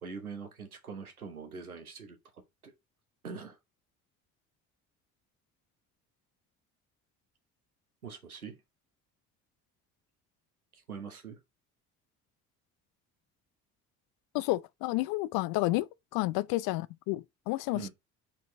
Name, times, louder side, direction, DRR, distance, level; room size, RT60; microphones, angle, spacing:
voice 1, 0.0-2.7 3.2-3.6 8.0-8.6 10.7-11.4 17.7-17.9, right 5 dB, 90° right, 1.2 m, -43 dB
voice 2, 14.3-15.9 16.1-17.9, left 19 dB, 55° left, 0.6 m, -30 dB
5.2 x 4.5 x 5.2 m
figure-of-eight pair, 50°, 42 cm